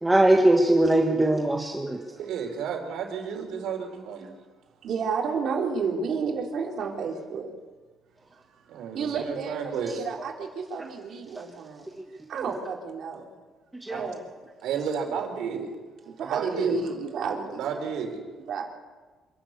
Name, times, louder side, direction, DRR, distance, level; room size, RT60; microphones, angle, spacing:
voice 1, 0.0-2.0 13.8-14.1, right 1 dB, 10° right, 1 dB, 1.5 m, -21 dB
voice 2, 2.1-4.4 8.7-9.9 13.9-14.1 14.6-15.7 16.2-16.9 17.6-18.2, right 7 dB, 80° right, 3 dB, 4.2 m, -32 dB
voice 3, 4.8-7.5 8.9-11.9 12.3-13.3 13.9-14.2 16.1-17.8 18.5-18.6, right 5 dB, 55° right, 0 dB, 3.8 m, -31 dB
26.5 x 12.0 x 8.3 m, 1.3 s
cardioid pair, 155°, 0 cm